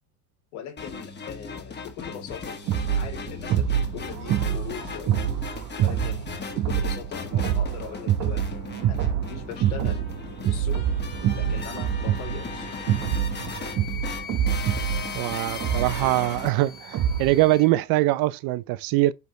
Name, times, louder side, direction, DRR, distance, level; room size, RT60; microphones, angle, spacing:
voice 1, 0.5-2.6 2.9-5.2 5.8-8.6 8.9-10.1 10.5-10.9 11.4-12.8, left 8 dB, 75° left, 3.7 m, -40 dB
sound 1, 0.8-16.5, left 4 dB, 25° left, 1.7 m, -37 dB
sound 2, 2.7-17.4, right 10 dB, 40° right, 1.0 m, -26 dB
Wind instrument woodwind instrument, 13.5-17.7, left 9 dB, 45° left, 1.4 m, -42 dB
voice 2, 15.1-19.1, right 17 dB, 55° right, 0.6 m, -23 dB
8.3 x 4.3 x 3.1 m
supercardioid pair, 110°, 43 cm